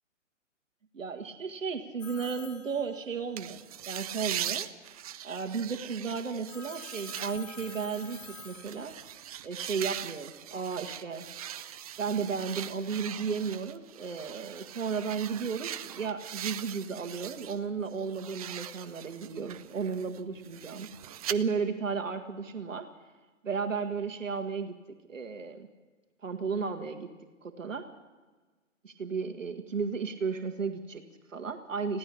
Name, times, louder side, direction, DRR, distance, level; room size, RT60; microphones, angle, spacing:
voice 1, 0.9-4.7 5.2-9.0 9.4-11.3 12.0-20.9 21.3-22.9 23.4-24.8 25.1-25.7 26.2-27.1 27.4-27.9 28.8-32.0, right 5 dB, 70° right, 6 dB, 1.9 m, -34 dB
Telephone, 2.0-3.5 6.5-9.3, left 4 dB, 80° left, 1.5 m, -48 dB
sound 1, 3.4-17.6 17.9-21.4, right 10 dB, 30° right, 0.6 m, -41 dB
20.5 x 15.5 x 8.5 m, 1.3 s
figure-of-eight pair, 130°, 39 cm